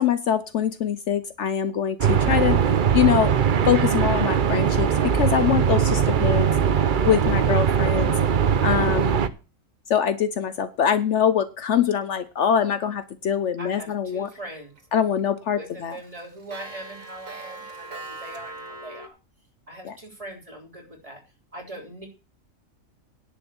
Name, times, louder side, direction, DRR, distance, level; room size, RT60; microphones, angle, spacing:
voice 1, 0.0-2.6 2.9-3.3 3.7-6.5 7.0-8.1 8.6-9.2 9.9-14.3 14.9-16.0 19.8-20.0, left 9 dB, 65° left, 13 dB, 1.0 m, -23 dB
sound 1, 2.0-9.3, right 7 dB, 45° right, 0.8 m, -21 dB
voice 2, 13.6-14.7 15.5-19.1 19.7-21.2 21.5-22.1, right 1 dB, 25° right, 1 dB, 3.6 m, -40 dB
Clock, 14.3-14.8 15.2-15.3 15.6-19.1, right 3 dB, 75° right, 2.4 m, -40 dB
10.5 x 6.9 x 7.0 m, 0.33 s
omnidirectional pair, 1.4 m